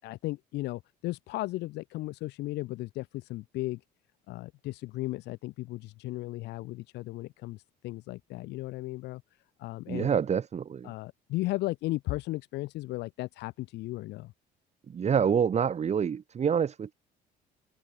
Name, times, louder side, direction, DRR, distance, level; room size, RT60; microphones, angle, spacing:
voice 1, 0.0-3.8 4.3-9.2 9.6-10.1 10.8-14.3, left 19 dB, 85° left, 7.3 m, -35 dB
voice 2, 9.9-10.9 14.9-16.9, right 7 dB, 40° right, 4.5 m, -27 dB
open air
cardioid pair, 110°, 17 cm